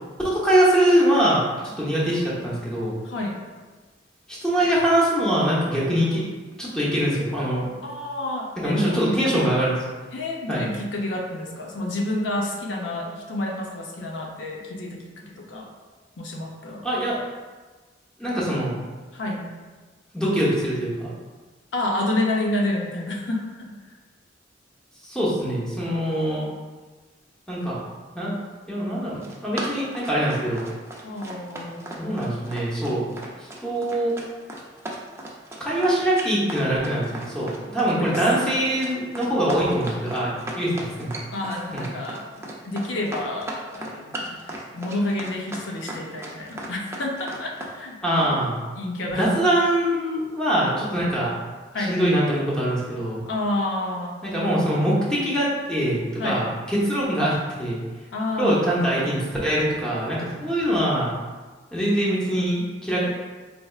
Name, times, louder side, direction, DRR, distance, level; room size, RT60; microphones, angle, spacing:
voice 1, 0.2-1.4 1.8-2.9 4.3-6.2 6.6-7.7 8.6-9.8 10.5-10.6 16.8-17.2 18.2-18.7 20.1-21.1 25.0-26.5 27.5-27.8 28.1-28.3 28.7-30.6 31.9-33.1 33.6-34.2 35.6-41.1 41.7-41.8 48.0-48.6 49.2-51.3 51.9-53.2 54.2-57.8 58.4-61.1 61.7-63.1, right 1 dB, 5° left, -7 dB, 0.9 m, -23 dB
voice 2, 3.0-3.4 7.8-9.6 10.1-15.7 16.2-16.8 19.1-19.5 21.7-23.7 31.0-31.9 37.9-38.2 41.3-48.0 48.3-48.4 48.7-49.3 51.7-52.0 53.3-54.2 56.2-56.5 58.1-58.8, left 1 dB, 90° left, -1 dB, 0.6 m, -29 dB
Run, 29.0-47.7, right 1 dB, 15° right, 0.4 m, -36 dB
4.2 x 3.3 x 2.4 m, 1.3 s
head